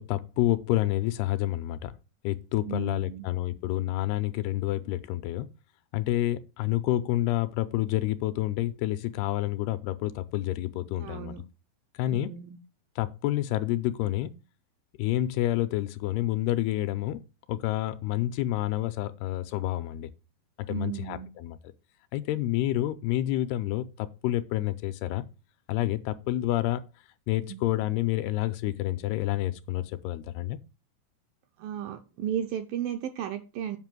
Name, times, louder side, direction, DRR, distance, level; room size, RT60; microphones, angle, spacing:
voice 1, 0.0-1.9 2.2-5.5 5.9-11.3 11.9-12.3 13.0-14.3 15.0-17.2 17.5-20.1 20.6-21.6 22.1-25.2 25.7-26.8 27.3-30.6, left 14 dB, 80° left, 2.5 m, -28 dB
voice 2, 2.7-3.3 11.0-11.4 12.1-12.6 20.7-21.3 27.5-27.6 31.6-33.8, right 9 dB, 80° right, 2.1 m, -34 dB
8.2 x 5.6 x 6.0 m
omnidirectional pair, 4.8 m